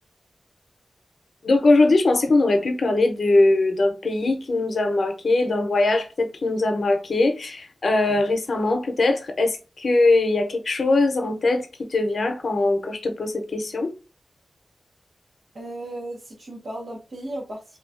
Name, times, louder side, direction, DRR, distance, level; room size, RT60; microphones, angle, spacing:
voice 1, 1.4-13.9, left 2 dB, 70° left, 0.6 m, -21 dB
voice 2, 15.5-17.8, right 1 dB, 70° right, 0.9 m, -35 dB
3.1 x 2.3 x 2.4 m
cardioid pair, 55°, 0 cm